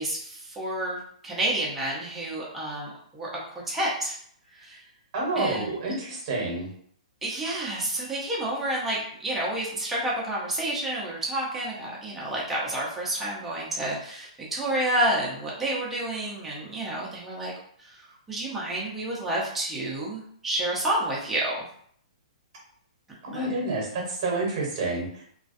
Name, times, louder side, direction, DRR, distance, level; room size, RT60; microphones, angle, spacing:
voice 1, 0.0-4.2 4.6-4.8 5.4-5.7 7.2-17.5 17.8-17.9 18.3-21.6 23.3-23.5, right 1 dB, 5° right, -5 dB, 0.5 m, -29 dB
voice 2, 5.1-6.7 23.3-25.2, right 2 dB, 35° right, -1 dB, 0.9 m, -29 dB
2.4 x 2.2 x 2.5 m, 0.62 s
hypercardioid pair, 170°, 4 cm